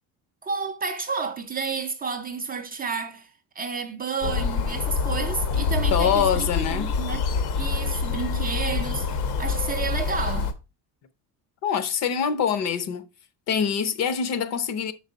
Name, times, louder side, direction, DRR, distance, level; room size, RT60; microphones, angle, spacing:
voice 1, 0.4-3.3 3.6-7.2 7.6-10.5, right 5 dB, 25° right, 0.4 m, -31 dB
sound 1, 4.2-10.5, left 5 dB, 80° left, 1.1 m, -26 dB
voice 2, 5.9-6.9 11.6-13.1 13.5-14.9, left 7 dB, 45° left, 0.6 m, -24 dB
6.4 x 4.7 x 3.8 m
cardioid pair, 175°, 39 cm